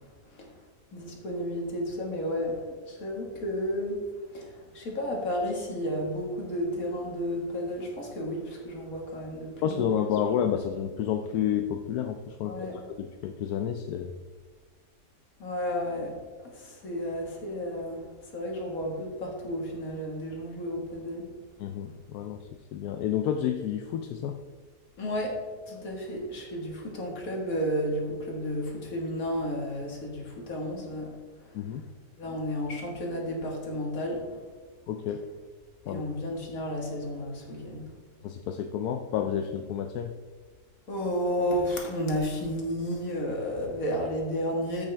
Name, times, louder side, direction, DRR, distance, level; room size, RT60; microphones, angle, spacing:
voice 1, 0.9-4.0 4.3-10.1 12.4-12.9 15.4-16.2 16.5-18.0 18.3-21.3 25.0-25.4 25.7-31.1 31.5-31.6 32.2-34.3 35.9-37.9 40.9-44.9, equal, 55° left, 0 dB, 2.1 m, -32 dB
voice 2, 9.6-12.7 13.0-14.1 21.6-22.4 22.7-24.4 31.5-31.8 34.9-35.2 35.9-36.0 38.2-40.1, left 9 dB, 70° left, 6 dB, 1.0 m, -30 dB
14.0 x 6.2 x 3.4 m, 1.4 s
omnidirectional pair, 1.8 m